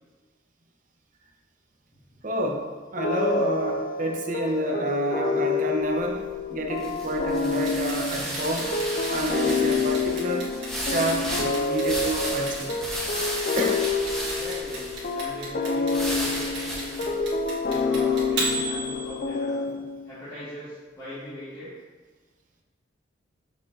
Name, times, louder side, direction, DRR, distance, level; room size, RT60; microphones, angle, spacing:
voice 1, 2.2-2.7 2.9-8.7 9.1-10.5 10.9-12.7 13.6-13.8, right 1 dB, 45° right, 1 dB, 0.8 m, -29 dB
sound 1, 3.0-20.1, left 4 dB, 45° left, 0.4 m, -28 dB
sound 2, 5.8-19.1, equal, 5° left, 1.2 m, -34 dB
Clock, 7.7-19.6, right 3 dB, 65° right, 1.9 m, -34 dB
voice 2, 14.2-17.1 17.6-19.7 20.0-21.7, equal, 20° left, -14 dB, 1.9 m, -40 dB
6.9 x 5.8 x 2.8 m, 1.4 s
head